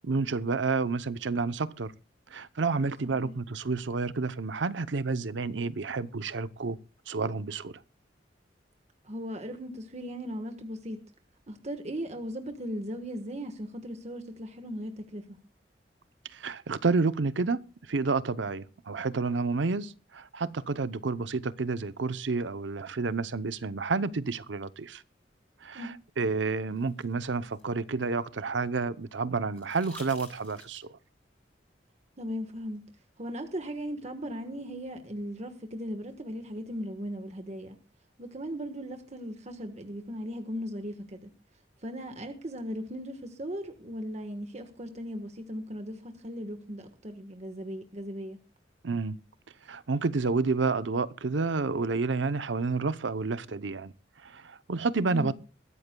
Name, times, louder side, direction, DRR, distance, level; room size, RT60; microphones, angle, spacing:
voice 1, 0.0-1.9 2.3-6.8 7.1-7.7 16.3-25.0 25.6-30.9 48.8-49.2 49.7-53.9 54.2-55.3, right 4 dB, 85° right, 0.7 m, -30 dB
voice 2, 9.0-11.0 11.5-15.4 25.7-25.9 32.2-32.8 33.2-37.8 38.2-41.3 41.8-48.4 55.1-55.3, equal, 40° right, 1.4 m, -38 dB
sound 1, 26.4-28.6 29.5-31.1 32.7-32.8, left 2 dB, 10° left, 5.7 m, -53 dB
21.5 x 14.0 x 2.3 m
head